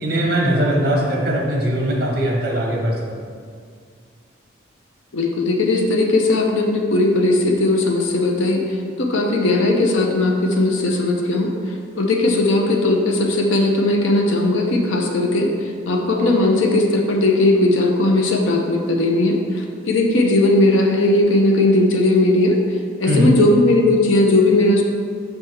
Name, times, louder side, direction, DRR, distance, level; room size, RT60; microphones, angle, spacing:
voice 1, 0.0-3.2 23.1-23.3, right 1 dB, 50° right, -1 dB, 1.0 m, -20 dB
voice 2, 5.1-8.6 9.0-11.5 12.0-15.5 15.9-22.6 23.0-24.8, left 2 dB, 80° left, 2 dB, 0.7 m, -17 dB
6.5 x 3.5 x 4.6 m, 2.1 s
head